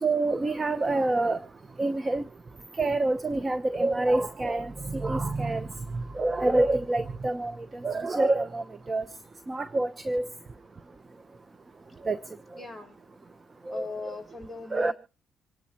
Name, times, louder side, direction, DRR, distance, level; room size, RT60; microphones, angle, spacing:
voice 1, 0.0-1.4 1.8-2.2 2.8-5.7 5.9-9.0 9.5-10.3 12.0-12.2 13.7-13.9 14.7-14.9, right 2 dB, 25° right, 14 dB, 0.8 m, -27 dB
voice 2, 12.6-13.0 13.7-14.9, left 3 dB, 5° right, 8 dB, 5.5 m, -39 dB
26.0 x 11.0 x 2.9 m, 0.37 s
cardioid pair, 90°, 0 cm